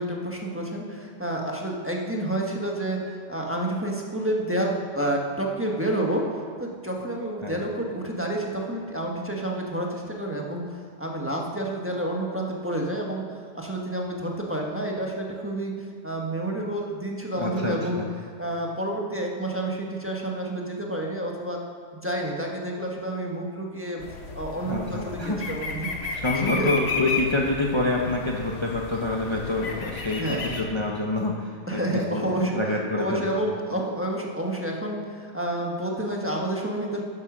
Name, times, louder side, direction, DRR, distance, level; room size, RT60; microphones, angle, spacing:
voice 1, 0.0-6.3 6.6-10.6 11.0-18.0 18.4-21.6 21.9-24.0 24.3-26.7 30.2-30.7 31.7-32.6 33.0-37.0, right 1 dB, 10° right, -1 dB, 1.3 m, -29 dB
voice 2, 17.4-18.0 24.7-25.5 26.1-31.8 32.1-33.4, left 2 dB, 25° left, -1 dB, 0.9 m, -27 dB
sound 1, 24.0-30.6, left 3 dB, 60° left, 1.4 m, -33 dB
11.0 x 9.9 x 6.2 m, 2.1 s
omnidirectional pair, 1.3 m